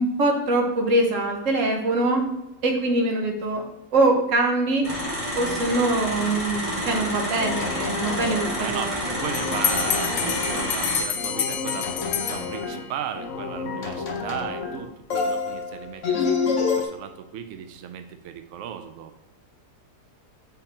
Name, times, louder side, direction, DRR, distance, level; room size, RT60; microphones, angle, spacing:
voice 1, 0.0-2.3 2.6-3.7 3.9-4.9 5.3-8.9, right 2 dB, 50° right, 2 dB, 1.3 m, -23 dB
sound 1, 4.8-11.0, equal, 20° right, 2.8 m, -29 dB
sound 2, 7.4-8.7 9.0-10.8 11.2-12.8 13.2-14.8 15.1-16.8, left 5 dB, 55° left, 1.0 m, -29 dB
voice 2, 8.6-19.1, right 8 dB, 85° right, 8 dB, 0.6 m, -36 dB
Bell, 9.3-13.0, left 8 dB, 75° left, 1.2 m, -28 dB
6.6 x 4.2 x 4.2 m, 0.90 s
omnidirectional pair, 1.9 m